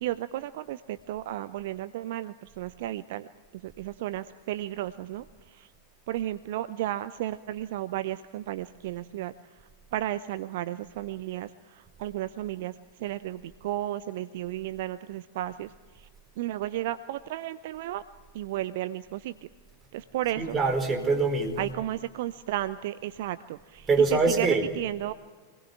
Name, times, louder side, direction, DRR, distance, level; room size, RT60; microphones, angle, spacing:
voice 1, 0.0-3.3 3.6-5.7 6.1-9.3 9.9-12.7 13.0-15.7 16.0-16.1 16.4-18.0 18.3-19.3 19.9-20.6 21.6-25.1, right 14 dB, 55° right, 14 dB, 0.7 m, -33 dB
voice 2, 20.4-21.7 23.9-24.6, right 4 dB, 15° right, 3 dB, 4.6 m, -24 dB
26.0 x 20.0 x 8.9 m, 1.4 s
figure-of-eight pair, 90°, 0 cm